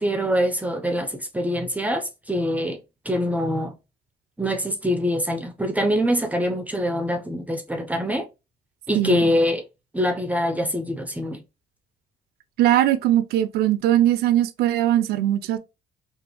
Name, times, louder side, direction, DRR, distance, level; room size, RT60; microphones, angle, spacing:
voice 1, 0.0-2.8 3.0-3.7 4.4-8.3 8.9-9.6 9.9-11.4, equal, 10° right, 0.5 m, -24 dB
voice 2, 12.6-15.6, right 12 dB, 70° right, 0.4 m, -20 dB
2.6 x 2.4 x 2.7 m
cardioid pair, 110°, 17 cm